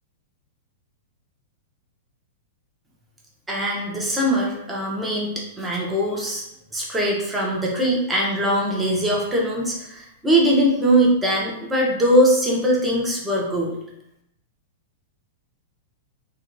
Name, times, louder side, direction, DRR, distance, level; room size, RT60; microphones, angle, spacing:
voice 1, 3.5-6.4 6.7-13.8, equal, 10° right, -3 dB, 0.7 m, -21 dB
2.7 x 2.2 x 2.5 m, 0.79 s
hypercardioid pair, 115°, 0 cm